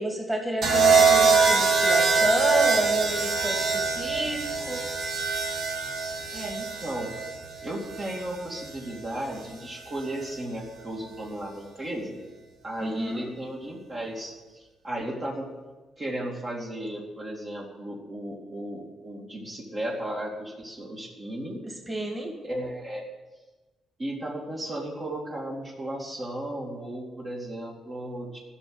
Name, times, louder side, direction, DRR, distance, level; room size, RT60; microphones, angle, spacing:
voice 1, 0.0-4.8 12.8-13.3 21.9-22.3, right 1 dB, 15° right, 0 dB, 2.9 m, -30 dB
sound 1, 0.6-8.7 10.0-10.3, right 4 dB, 70° right, 2.1 m, -24 dB
voice 2, 6.3-7.1 7.6-12.2 12.6-15.5 16.0-21.6 22.4-23.1 24.0-28.4, right 1 dB, 35° right, -3 dB, 2.5 m, -35 dB
13.0 x 6.4 x 9.8 m, 1.2 s
cardioid pair, 95°, 0 cm